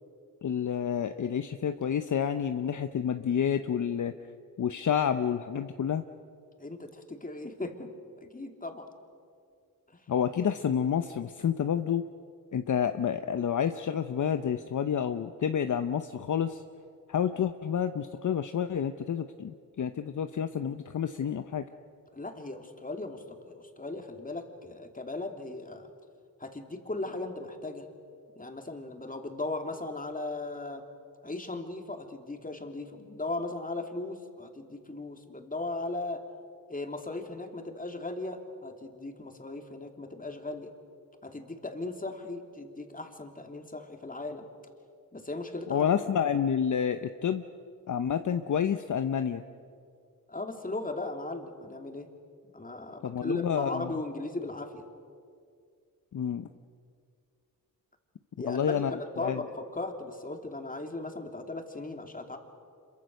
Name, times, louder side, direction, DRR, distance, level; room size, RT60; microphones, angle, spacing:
voice 1, 0.4-4.1 4.6-6.0 10.1-12.0 12.5-16.6 17.1-21.6 45.7-47.4 47.9-49.4 53.0-53.9 56.1-56.5 58.4-59.4, left 8 dB, 55° left, 9 dB, 0.9 m, -29 dB
voice 2, 6.6-8.9 9.9-10.0 22.1-25.9 26.4-27.9 28.4-30.8 31.2-36.2 36.7-40.7 41.2-44.4 45.1-45.9 50.3-52.1 52.4-54.8 58.4-62.4, left 2 dB, 25° left, 4 dB, 2.8 m, -37 dB
26.5 x 23.0 x 6.5 m, 2.3 s
cardioid pair, 70°, 36 cm